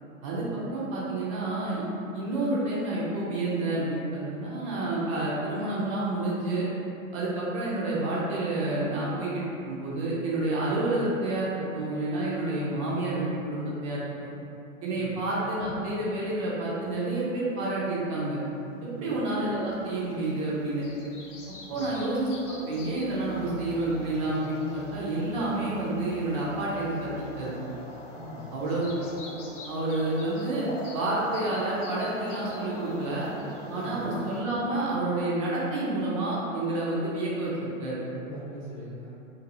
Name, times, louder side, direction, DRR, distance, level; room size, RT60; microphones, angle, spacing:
voice 1, 0.2-1.8 2.1-6.7 7.1-14.3 14.8-18.4 19.0-20.9 21.7-27.1 27.4-27.6 28.5-28.9 29.7-30.6 30.9-33.3 33.7-38.0, right 2 dB, 25° right, -7 dB, 0.4 m, -29 dB
voice 2, 14.9-15.2 18.8-19.2 21.7-21.9 28.1-28.5 33.7-34.0 38.1-39.1, equal, 15° left, -14 dB, 0.7 m, -42 dB
sound 1, 19.8-34.4, left 1 dB, 65° left, 0.6 m, -43 dB
2.6 x 2.5 x 2.5 m, 2.8 s
figure-of-eight pair, 105°, 40 cm